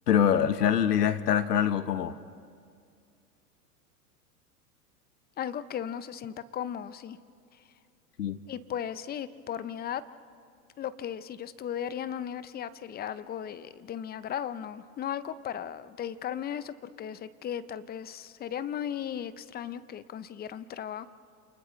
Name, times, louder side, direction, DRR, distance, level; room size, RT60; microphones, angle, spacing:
voice 1, 0.1-2.2 8.2-8.4, left 9 dB, 85° left, 12 dB, 1.2 m, -24 dB
voice 2, 5.4-7.2 8.5-10.0 10.8-21.1, left 9 dB, 20° left, 14 dB, 0.6 m, -36 dB
29.5 x 28.5 x 3.2 m, 2.3 s
hypercardioid pair, 105°, 46 cm